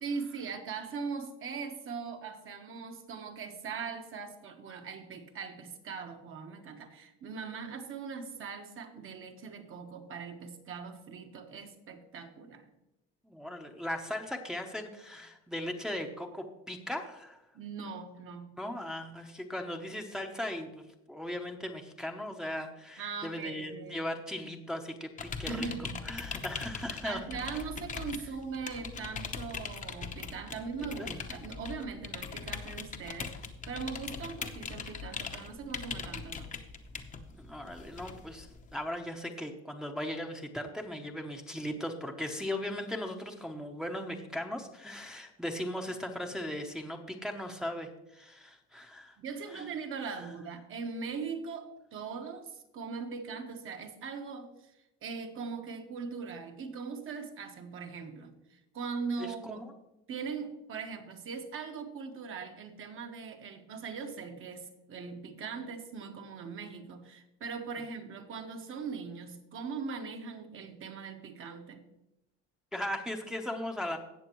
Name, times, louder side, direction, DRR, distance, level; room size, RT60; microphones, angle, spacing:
voice 1, 0.0-12.7 17.5-18.6 23.0-24.0 25.5-26.0 27.0-33.4 33.7-36.5 49.2-54.7 55.0-59.6 60.1-71.8, right 5 dB, 45° right, 5 dB, 1.3 m, -40 dB
voice 2, 13.2-17.4 18.6-25.7 26.0-27.2 30.8-31.1 37.4-49.2 49.5-49.6 50.2-50.3 59.2-59.6 72.7-74.0, left 1 dB, ahead, 3 dB, 0.8 m, -38 dB
sound 1, 25.2-38.9, left 5 dB, 25° left, 0.8 m, -41 dB
17.0 x 6.7 x 3.1 m, 0.90 s
cardioid pair, 125°, 30 cm